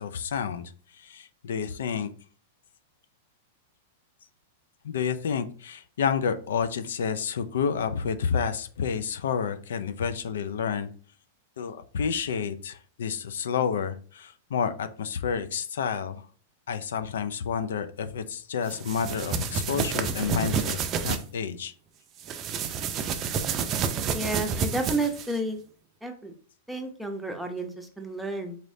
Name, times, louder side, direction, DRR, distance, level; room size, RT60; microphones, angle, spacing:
voice 1, 0.0-2.1 4.8-10.9 11.6-16.2 16.7-20.8 21.0-21.7, left 7 dB, 80° left, 11 dB, 0.4 m, -30 dB
sound 1, 18.7-21.2 22.2-25.4, right 6 dB, 35° right, 0.4 m, -29 dB
voice 2, 24.1-25.6 26.0-26.3 26.7-28.6, right 2 dB, 5° right, 4 dB, 0.7 m, -31 dB
4.0 x 3.1 x 2.6 m, 0.42 s
hypercardioid pair, 120°, 0 cm